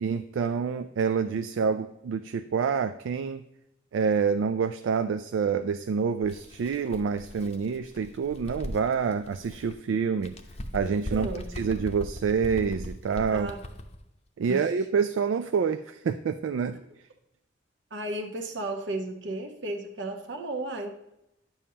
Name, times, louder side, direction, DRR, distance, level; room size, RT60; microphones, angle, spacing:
voice 1, 0.0-3.4 3.9-10.4 10.7-11.3 11.6-13.5 14.4-16.8, right 6 dB, 85° right, 10 dB, 0.3 m, -27 dB
Bird, 6.2-9.8 10.2-14.0, left 1 dB, 35° left, 0.7 m, -40 dB
voice 2, 11.1-11.5 13.3-13.6 14.5-14.7 17.9-20.9, right 2 dB, 70° right, 4 dB, 1.1 m, -34 dB
9.7 x 7.1 x 2.8 m, 0.84 s
head